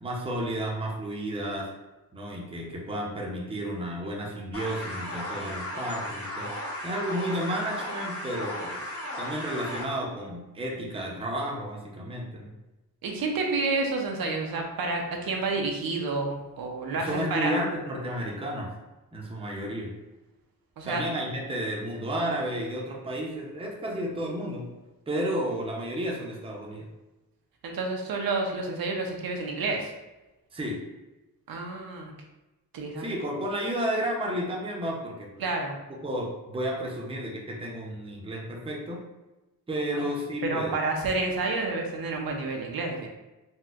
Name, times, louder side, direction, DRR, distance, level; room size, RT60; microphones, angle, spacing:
voice 1, 0.0-1.7 2.1-6.5 6.8-8.8 9.2-12.5 16.9-18.7 19.1-19.9 20.8-24.6 25.1-26.9 30.5-30.8 33.0-35.4 36.0-39.0 39.7-40.7, equal, 15° right, -2 dB, 0.5 m, -32 dB
sound 1, 4.5-9.8, left 1 dB, 40° left, 0.9 m, -35 dB
voice 2, 13.0-17.6 20.8-21.0 27.6-29.9 31.5-32.1 32.7-33.2 35.4-35.8 39.9-40.0 40.4-43.1, right 3 dB, 70° right, 1 dB, 0.6 m, -29 dB
4.1 x 2.1 x 2.4 m, 1.1 s
wide cardioid pair, 125°, 37 cm